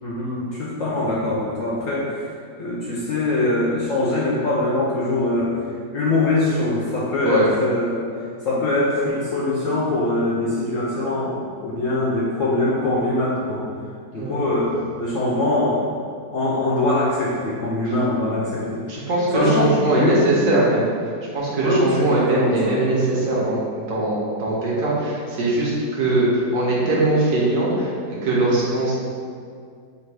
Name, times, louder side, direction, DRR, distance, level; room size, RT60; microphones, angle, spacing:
voice 1, 0.0-2.3 2.6-5.6 5.9-8.0 8.4-11.4 11.6-13.6 14.1-15.8 16.3-18.8 19.3-20.3 21.6-22.8, left 2 dB, 65° left, -6 dB, 0.8 m, -22 dB
voice 2, 18.9-20.9 21.3-28.9, right 2 dB, 55° right, -6 dB, 1.1 m, -21 dB
3.5 x 2.6 x 4.6 m, 2.1 s
omnidirectional pair, 1.9 m